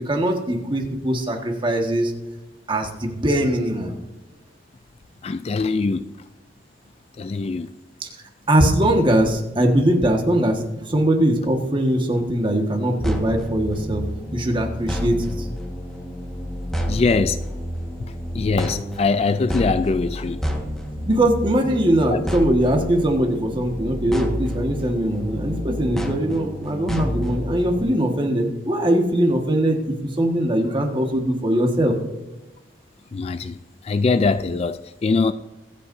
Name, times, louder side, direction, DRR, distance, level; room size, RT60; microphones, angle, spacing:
voice 1, 0.0-2.1 2.7-3.9 8.0-8.1 8.5-14.0 14.3-15.5 21.1-29.8 30.2-31.9, right 1 dB, 25° right, 1.6 m, -21 dB
voice 2, 5.2-6.0 7.2-7.7 16.9-17.4 18.3-20.4 22.1-22.2 33.1-33.5 33.9-35.3, left 4 dB, 35° left, 0.3 m, -22 dB
sound 1, 13.0-27.8, equal, 5° left, 1.5 m, -29 dB
24.5 x 8.3 x 2.7 m
head